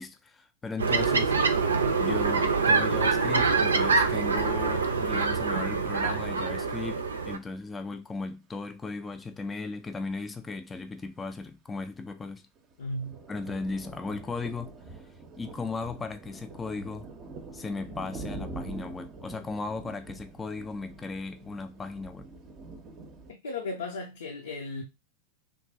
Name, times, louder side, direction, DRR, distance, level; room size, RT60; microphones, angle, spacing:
voice 1, 0.0-1.3 1.9-12.5 13.3-14.7 15.4-17.1 17.5-22.3, left 3 dB, 15° left, 0.4 m, -36 dB
sound 1, 0.8-7.4, right 4 dB, 70° right, 0.5 m, -25 dB
sound 2, 12.6-23.3, right 3 dB, 30° right, 0.6 m, -44 dB
voice 2, 12.8-13.2 23.3-24.8, left 2 dB, 65° left, 0.6 m, -35 dB
3.1 x 2.4 x 3.3 m
figure-of-eight pair, 90°, 0 cm